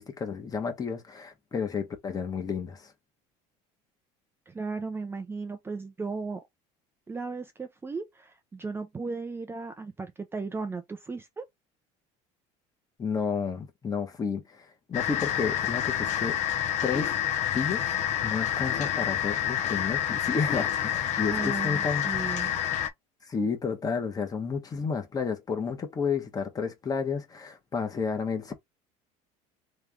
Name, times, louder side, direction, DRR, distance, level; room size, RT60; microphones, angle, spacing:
voice 1, 0.0-2.9 13.0-16.4 16.8-17.2 17.5-17.8 18.2-22.1 23.2-28.5, left 5 dB, 25° left, 1.2 m, -31 dB
voice 2, 4.5-6.4 7.1-11.5 21.3-22.6, right 4 dB, 15° right, 0.6 m, -36 dB
sound 1, 14.9-22.9, left 10 dB, 50° left, 0.9 m, -28 dB
3.4 x 3.2 x 3.6 m
cardioid pair, 130°, 16 cm